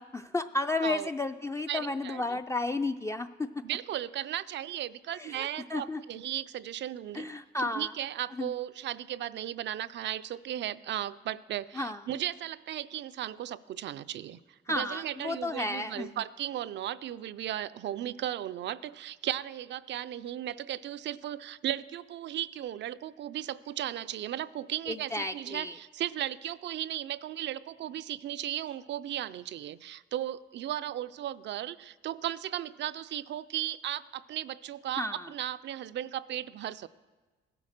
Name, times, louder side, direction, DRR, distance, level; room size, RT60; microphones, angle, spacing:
voice 1, 0.0-3.5 5.2-6.0 7.1-7.9 8.4-8.5 11.7-12.0 14.7-16.1 24.9-25.8 35.0-35.3, left 2 dB, 15° left, 7 dB, 0.4 m, -33 dB
voice 2, 1.7-2.4 3.6-7.3 7.6-14.4 14.7-36.9, right 12 dB, 65° right, 15 dB, 0.5 m, -36 dB
16.0 x 8.5 x 6.5 m, 1.3 s
cardioid pair, 90°, 20 cm